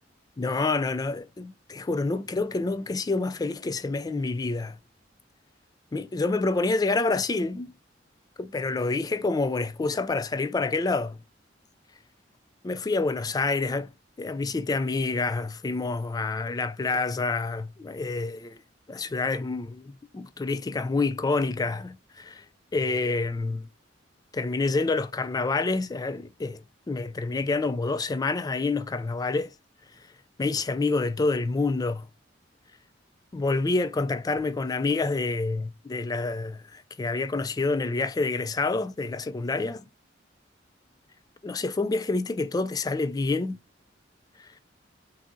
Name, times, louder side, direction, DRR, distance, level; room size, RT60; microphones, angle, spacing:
voice 1, 0.4-4.8 5.9-7.7 8.4-11.2 12.6-13.9 14.2-18.6 18.9-22.4 22.7-23.7 24.3-26.6 26.9-29.5 30.4-32.0 33.3-39.8 41.4-43.6 44.4-44.5, left 3 dB, 20° left, 0.3 m, -27 dB
5.7 x 2.7 x 2.6 m
head